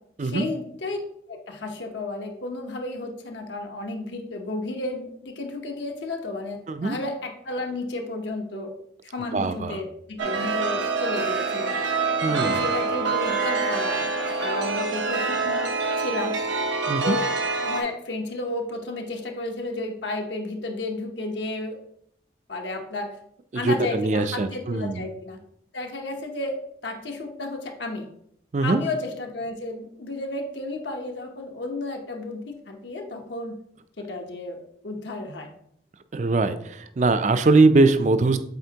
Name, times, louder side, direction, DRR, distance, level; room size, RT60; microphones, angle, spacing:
voice 1, 0.2-1.0 1.3-8.7 9.0-11.7 12.3-15.7 16.0-16.4 17.0-17.3 17.6-21.8 22.5-23.2 23.5-25.4 25.7-28.1 28.6-33.6 34.0-35.5, left 2 dB, 75° left, 3 dB, 0.8 m, -32 dB
voice 2, 9.3-9.8 12.2-12.7 16.9-17.2 23.6-25.0 28.5-28.8 36.1-38.4, right 3 dB, 40° right, 11 dB, 0.4 m, -21 dB
Chime, 10.2-17.8, right 4 dB, 85° right, 0.9 m, -26 dB
7.8 x 4.3 x 2.8 m, 0.71 s
head